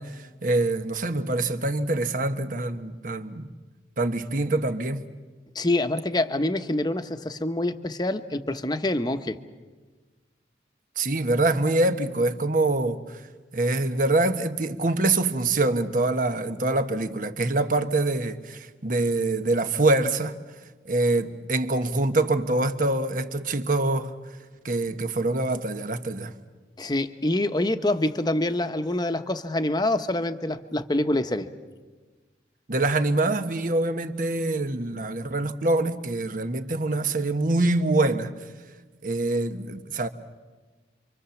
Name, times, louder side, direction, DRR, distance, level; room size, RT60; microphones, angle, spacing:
voice 1, 0.0-3.5 4.0-5.1 11.0-13.2 13.5-20.3 20.8-24.1 24.6-26.3 32.7-38.3 39.0-40.1, right 2 dB, 50° right, 1.3 m, -25 dB
voice 2, 5.5-9.4 26.8-31.5, left 1 dB, 25° left, 1.0 m, -26 dB
28.5 x 25.0 x 7.1 m
head